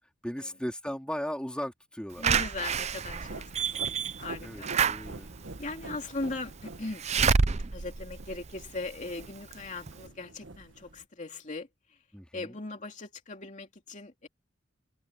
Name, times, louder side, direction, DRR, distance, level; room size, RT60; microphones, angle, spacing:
voice 1, 0.2-2.3 4.4-5.3 12.1-12.6, equal, 5° left, 3.7 m, -37 dB
voice 2, 2.2-4.7 5.6-7.0 7.7-11.7 12.3-14.3, left 2 dB, 40° left, 2.7 m, -39 dB
Slam / Alarm, 2.2-9.1 9.5-9.6 9.9-10.0, right 5 dB, 35° right, 0.6 m, -29 dB
sound 1, 3.0-11.0, right 2 dB, 70° right, 1.5 m, -46 dB
head